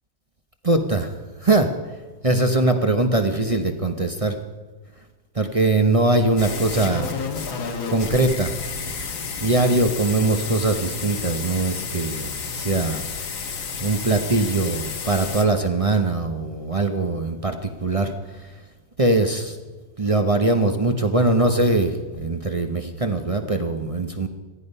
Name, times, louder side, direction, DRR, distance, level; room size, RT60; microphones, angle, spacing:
voice 1, 0.6-1.1 1.4-1.7 2.2-4.4 5.3-7.1 7.9-8.5 9.4-13.0 13.8-18.1 19.0-19.6 20.0-24.3, right 2 dB, 30° right, 5 dB, 0.6 m, -21 dB
sound 1, 6.4-15.5, left 5 dB, 90° left, 2.3 m, -31 dB
18.5 x 13.5 x 5.5 m, 1.3 s
omnidirectional pair, 2.1 m